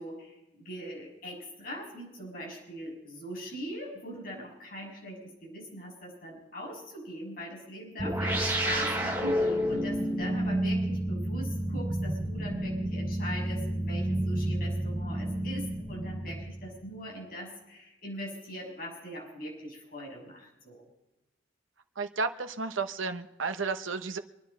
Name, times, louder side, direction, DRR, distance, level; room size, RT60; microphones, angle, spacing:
voice 1, 0.0-20.8, equal, 45° left, -2 dB, 6.9 m, -41 dB
sound 1, 8.0-16.8, right 1 dB, 10° right, 7.3 m, -30 dB
voice 2, 22.0-24.2, right 4 dB, 85° right, 8 dB, 1.0 m, -32 dB
26.5 x 10.5 x 4.2 m, 0.97 s
head